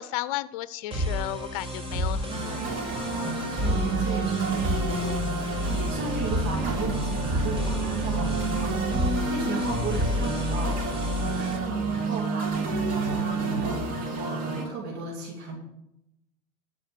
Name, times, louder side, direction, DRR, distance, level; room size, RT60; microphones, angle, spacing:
voice 1, 0.0-2.7, left 15 dB, 70° left, 17 dB, 0.6 m, -34 dB
sound 1, 0.9-11.6, equal, 25° right, 5.0 m, -30 dB
sound 2, 2.3-14.6, right 3 dB, 50° right, 3.3 m, -29 dB
voice 2, 3.0-5.0 5.6-15.6, right 3 dB, 65° right, -1 dB, 2.5 m, -36 dB
13.0 x 4.9 x 7.5 m, 0.85 s
hypercardioid pair, 95°, 18 cm